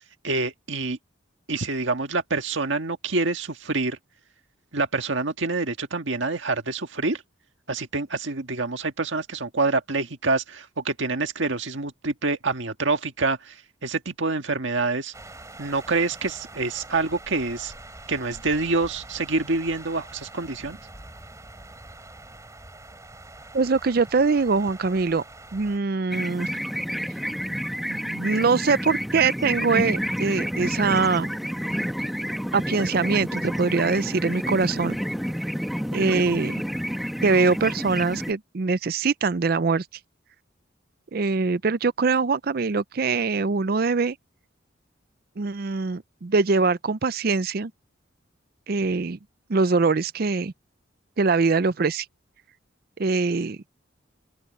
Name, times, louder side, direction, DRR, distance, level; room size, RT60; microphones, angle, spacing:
voice 1, 0.2-1.0 1.5-4.0 4.7-7.2 7.7-13.6 13.8-15.1 15.6-17.7 18.1-20.8, right 3 dB, 70° right, 1.7 m, -26 dB
sound 1, 15.1-25.8, right 2 dB, 15° right, 3.2 m, -44 dB
voice 2, 23.5-25.2 25.5-26.5 27.9-31.3 32.5-35.0 35.9-36.5 37.2-39.8 41.1-44.2 45.4-47.7 48.7-49.2 49.5-50.5 51.2-52.1 53.0-53.6, right 4 dB, 50° right, 0.5 m, -23 dB
sound 2, 26.1-38.3, equal, ahead, 1.0 m, -29 dB
open air
head